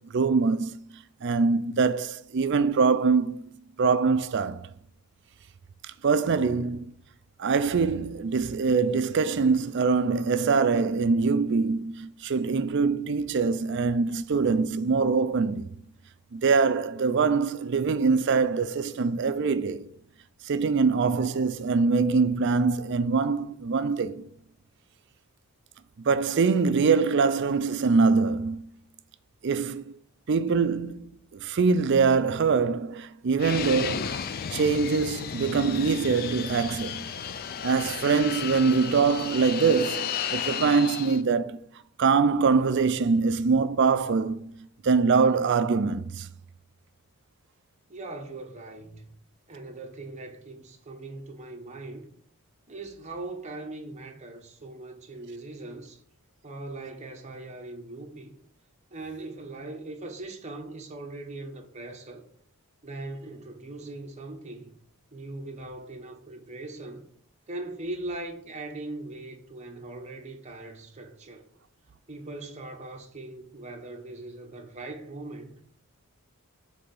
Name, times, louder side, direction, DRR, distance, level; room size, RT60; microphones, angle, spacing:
voice 1, 0.1-0.7 1.2-3.4 3.8-4.7 6.0-6.9 7.4-15.7 16.3-19.8 20.5-24.3 26.0-28.7 29.4-29.8 30.3-31.1 31.3-34.2 34.5-37.0 37.6-41.6 42.0-44.4 44.8-46.3, right 4 dB, 55° right, 0.4 m, -23 dB
Fixed-wing aircraft airplane, 33.4-41.2, left 7 dB, 40° left, 0.3 m, -33 dB
voice 2, 47.9-49.1 49.5-52.1 52.7-56.0 56.4-58.3 58.9-62.3 62.8-64.7 65.1-67.1 67.5-71.4 72.1-75.5, right 2 dB, 30° right, 1.0 m, -40 dB
7.1 x 3.4 x 5.4 m
head